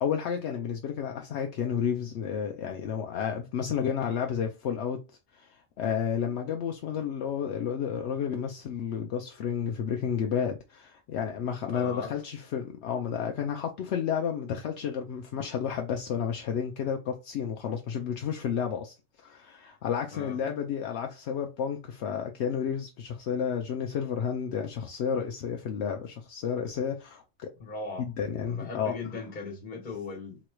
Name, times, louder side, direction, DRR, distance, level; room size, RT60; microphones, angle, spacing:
voice 1, 0.0-5.0 5.3-18.9 19.2-27.5 28.0-29.0, left 7 dB, 75° left, 0.9 m, -31 dB
voice 2, 11.7-12.1 20.1-20.4 27.6-28.1 28.5-30.4, left 4 dB, 45° left, 1.4 m, -38 dB
4.1 x 3.0 x 2.2 m
omnidirectional pair, 1.2 m